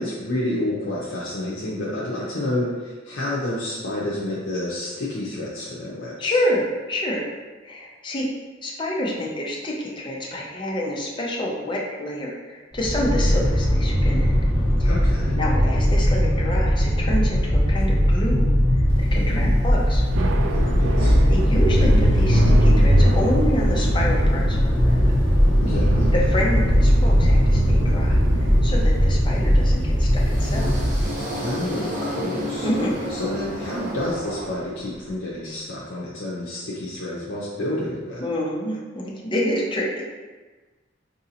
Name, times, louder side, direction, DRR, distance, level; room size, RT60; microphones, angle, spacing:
voice 1, 0.0-6.4 14.8-15.4 19.1-19.6 20.5-21.2 25.6-26.1 31.4-32.7 33.1-38.2, left 1 dB, 75° left, -7 dB, 0.6 m, -29 dB
voice 2, 6.2-7.3 7.6-8.3 8.6-14.3 14.8-15.0 15.4-20.0 21.3-25.0 26.1-30.9 32.6-33.0 38.2-40.0, equal, 25° left, -3 dB, 0.6 m, -28 dB
sound 1, 12.7-31.1, equal, ahead, 1.3 m, -19 dB
Thunder / Rain, 18.9-31.8, right 2 dB, 70° right, 0.3 m, -30 dB
sound 2, 30.0-35.1, equal, 40° right, 1.4 m, -31 dB
4.8 x 2.7 x 2.7 m, 1.3 s
head